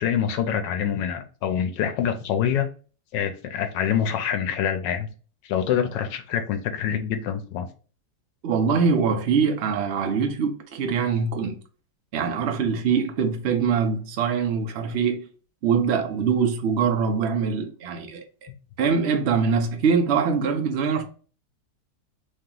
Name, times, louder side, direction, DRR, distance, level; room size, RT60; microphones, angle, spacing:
voice 1, 0.0-2.7 3.1-5.1 5.4-7.7, left 8 dB, 90° left, 1.3 m, -25 dB
voice 2, 8.4-11.6 12.1-15.3 15.6-18.2 18.8-21.0, right 6 dB, 75° right, 0.6 m, -23 dB
3.2 x 2.9 x 3.7 m
omnidirectional pair, 1.9 m